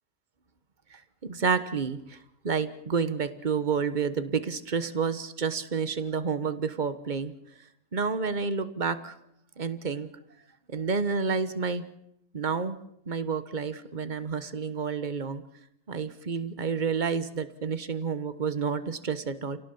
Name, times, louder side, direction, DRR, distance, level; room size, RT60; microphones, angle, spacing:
voice 1, 1.2-2.2 2.4-7.3 7.9-9.1 9.6-10.1 10.7-11.8 12.3-12.8 13.1-15.4 15.9-19.6, right 5 dB, 35° right, 12 dB, 1.3 m, -29 dB
28.5 x 17.5 x 7.1 m, 0.78 s
omnidirectional pair, 1.6 m